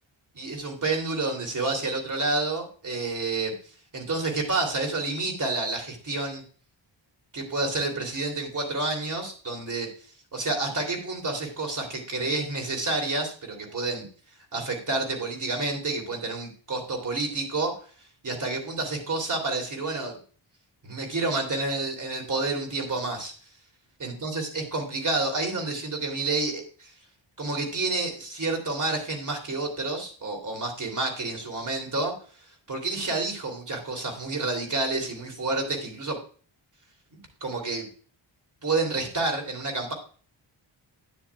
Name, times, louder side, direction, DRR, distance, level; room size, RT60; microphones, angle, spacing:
voice 1, 0.4-3.5 3.9-6.4 7.3-9.9 10.3-14.0 14.5-17.7 18.2-20.2 20.8-23.3 24.0-26.9 27.4-32.1 32.7-36.2 37.4-37.9 38.6-39.9, right 3 dB, 40° right, 2 dB, 3.0 m, -29 dB
12.0 x 9.6 x 2.3 m, 0.40 s
wide cardioid pair, 135°, 48 cm